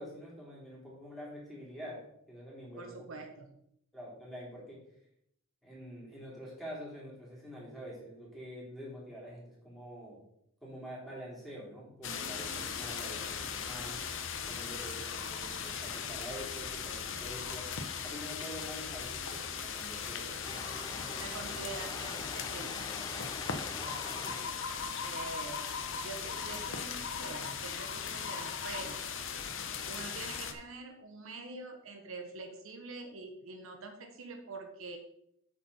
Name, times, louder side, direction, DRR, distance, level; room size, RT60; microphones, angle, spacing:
voice 1, 0.0-2.9 3.9-4.8 5.6-10.2 10.6-14.0 14.5-17.7 18.0-21.5 24.2-24.4, equal, ahead, -6 dB, 3.5 m, -46 dB
voice 2, 2.8-3.6 21.2-23.5 25.0-25.6 26.0-29.1 29.9-35.0, right 3 dB, 75° right, 4 dB, 1.2 m, -45 dB
sound 1, 12.0-30.5, left 6 dB, 65° left, 0.9 m, -38 dB
sound 2, 20.4-24.6, left 3 dB, 20° left, 0.4 m, -44 dB
8.3 x 6.4 x 4.3 m, 0.73 s
head